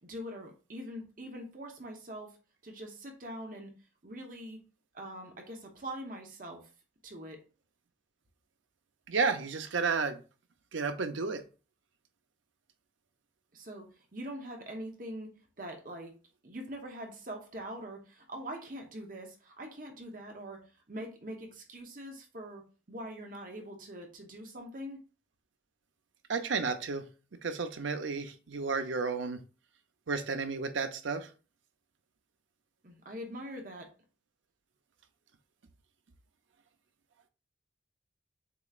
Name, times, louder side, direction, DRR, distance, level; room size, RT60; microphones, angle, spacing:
voice 1, 0.0-2.4 2.6-3.7 4.0-4.6 4.9-6.7 7.0-7.4 13.5-15.3 15.6-16.1 16.4-22.6 22.9-25.0 32.8-33.9, equal, 45° right, 3 dB, 1.0 m, -43 dB
voice 2, 9.1-10.2 10.7-11.4 26.3-27.1 27.4-29.4 30.1-31.3, right 4 dB, 85° right, 8 dB, 0.7 m, -32 dB
6.8 x 3.0 x 2.5 m, 0.34 s
head